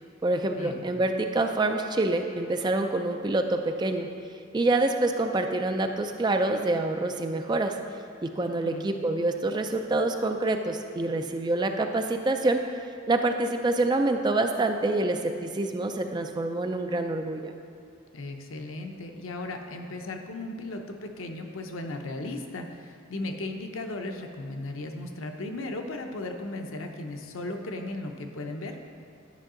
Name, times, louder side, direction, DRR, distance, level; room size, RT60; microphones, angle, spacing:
voice 1, 0.2-4.1 4.5-7.7 8.2-12.6 13.1-17.5, right 2 dB, 20° right, 5 dB, 0.3 m, -26 dB
voice 2, 8.4-8.9 18.1-28.8, left 2 dB, 85° left, 4 dB, 0.7 m, -36 dB
10.5 x 5.4 x 3.8 m, 2.3 s
head